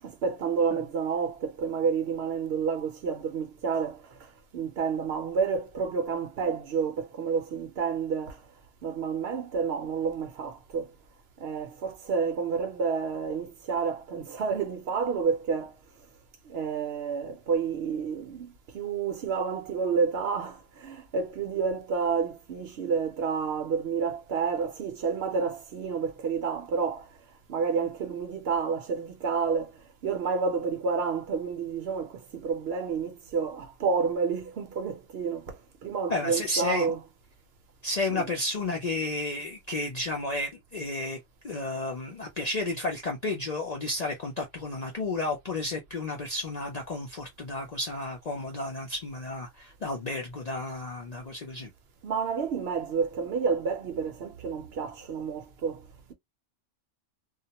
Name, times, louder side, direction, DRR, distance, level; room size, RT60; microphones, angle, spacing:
voice 1, 0.0-8.4 8.8-10.9 11.4-15.8 16.5-27.1 27.5-37.0 38.1-38.3 52.0-56.1, right 5 dB, 65° right, 0.8 m, -30 dB
voice 2, 36.1-37.0 37.8-41.2 41.4-51.7, left 2 dB, 50° left, 0.5 m, -32 dB
2.2 x 2.1 x 2.7 m
omnidirectional pair, 1.2 m